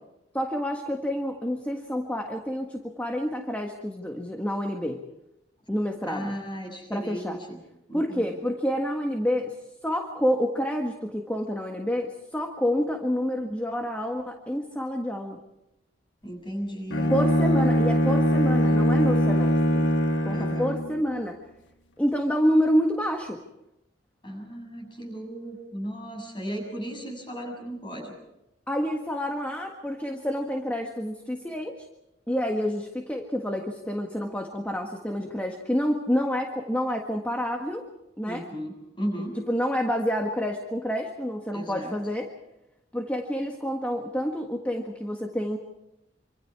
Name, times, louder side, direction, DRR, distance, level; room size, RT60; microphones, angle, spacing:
voice 1, 0.3-5.0 5.7-6.4 6.9-7.4 7.9-9.5 9.8-15.4 17.1-19.9 20.3-21.4 22.0-23.4 28.7-31.9 32.3-37.9 38.2-38.5 39.2-42.3 42.9-45.6, equal, 10° left, 2 dB, 1.6 m, -28 dB
voice 2, 6.0-7.6 7.9-8.3 16.2-17.2 20.3-20.7 24.2-28.1 38.2-39.4 41.5-42.0, equal, 25° left, 2 dB, 7.1 m, -35 dB
Bowed string instrument, 16.9-21.0, equal, 85° left, 1.5 m, -22 dB
26.0 x 26.0 x 4.8 m, 0.89 s
head